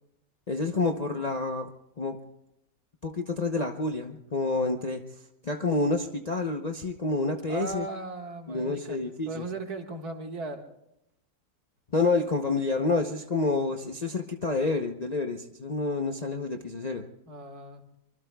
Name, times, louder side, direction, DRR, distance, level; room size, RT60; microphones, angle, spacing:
voice 1, 0.5-1.7 2.0-2.2 3.0-5.1 5.4-7.9 8.5-9.4 11.9-17.0, left 3 dB, 35° left, 3 dB, 0.7 m, -28 dB
voice 2, 7.5-9.0 9.3-10.6 17.3-17.8, right 2 dB, 65° right, 3 dB, 2.3 m, -37 dB
25.0 x 23.5 x 2.3 m, 0.83 s
omnidirectional pair, 1.7 m